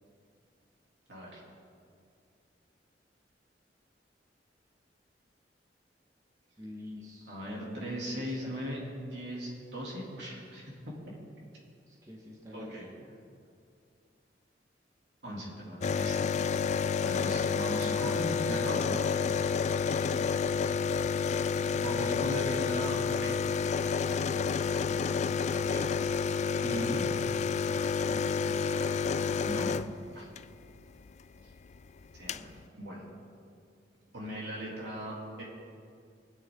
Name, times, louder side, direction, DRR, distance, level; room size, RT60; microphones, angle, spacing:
voice 1, 1.1-1.4 7.3-8.8 9.1-11.2 12.5-12.9 15.2-16.2 17.0-19.1 21.7-23.3 26.6-27.2 28.4-28.7 29.4-29.7 30.1-30.3 32.1-32.5 32.8-33.1 34.1-35.4, equal, 75° right, -4 dB, 3.3 m, -38 dB
voice 2, 6.6-7.4 8.0-8.6 11.9-13.1 24.8-25.9, equal, 20° right, -3 dB, 1.7 m, -47 dB
sound 1, 15.8-30.4 31.7-31.8 32.0-32.5, left 6 dB, 40° left, 0.3 m, -29 dB
23.0 x 8.0 x 4.0 m, 2.3 s
head